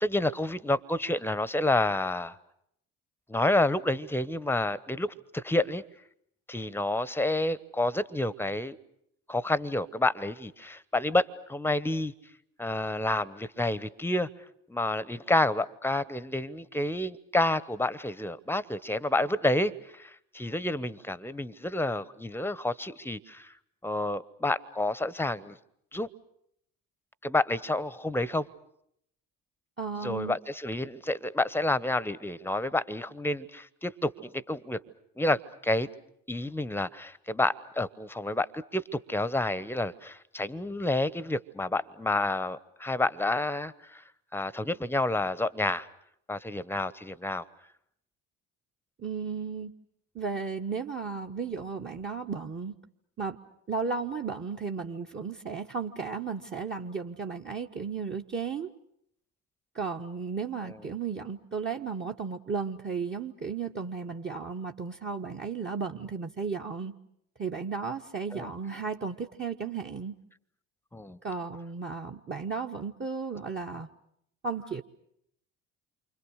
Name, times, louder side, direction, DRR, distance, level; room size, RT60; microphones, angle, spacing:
voice 1, 0.0-2.4 3.3-5.8 6.5-8.8 9.3-12.1 12.6-14.3 14.7-23.5 23.8-25.6 25.9-26.1 27.2-28.5 30.0-34.8 35.2-35.9 36.3-44.0 44.3-45.9 46.3-47.4 60.6-60.8 68.3-68.5 70.9-71.2, left 2 dB, 5° left, 18 dB, 1.0 m, -29 dB
voice 2, 29.8-30.4 49.0-49.7 50.1-52.7 53.2-53.4 53.7-58.7 59.7-66.9 67.4-70.1 71.2-73.9 74.4-74.8, right 5 dB, 25° right, 9 dB, 1.2 m, -34 dB
28.5 x 25.0 x 6.5 m, 0.72 s
hypercardioid pair, 60°, 41 cm